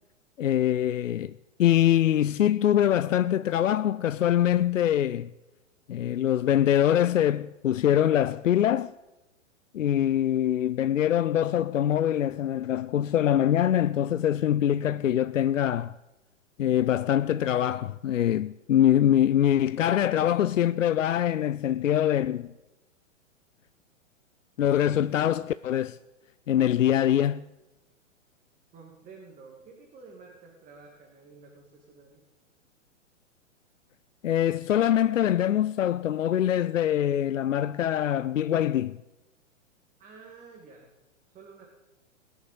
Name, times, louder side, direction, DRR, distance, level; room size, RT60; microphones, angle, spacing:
voice 1, 0.4-1.3 1.6-5.3 5.9-8.9 9.7-15.9 16.6-22.5 24.6-26.0 26.5-27.4 34.2-39.0, left 11 dB, 75° left, 0.5 m, -24 dB
voice 2, 28.7-32.2 40.0-40.9 41.3-41.7, right 4 dB, 20° right, 2.2 m, -50 dB
20.0 x 7.2 x 7.2 m
figure-of-eight pair, 115°, 39 cm